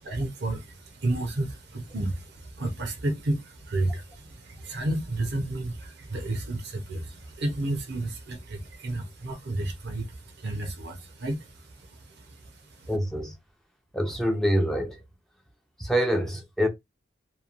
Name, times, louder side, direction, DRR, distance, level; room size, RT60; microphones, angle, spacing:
voice 1, 0.1-11.5 11.9-12.3, right 2 dB, 55° right, 0.7 m, -31 dB
voice 2, 12.9-13.4 13.9-15.0 15.8-16.7, equal, ahead, 0.5 m, -25 dB
3.0 x 2.2 x 2.5 m
head